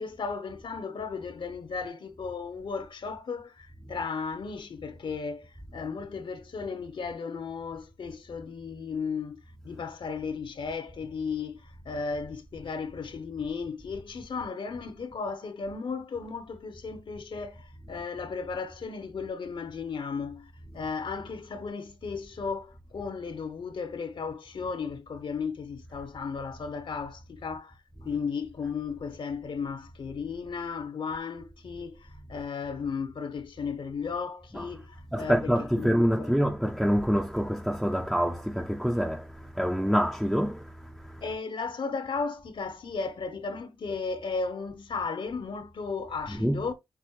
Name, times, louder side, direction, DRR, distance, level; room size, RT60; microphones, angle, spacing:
voice 1, 0.0-35.4 35.7-36.3 41.2-46.7, left 5 dB, 60° left, 0.8 m, -35 dB
voice 2, 35.1-41.3 46.2-46.7, equal, ahead, 0.5 m, -27 dB
6.0 x 2.6 x 3.1 m
cardioid pair, 75°, 9 cm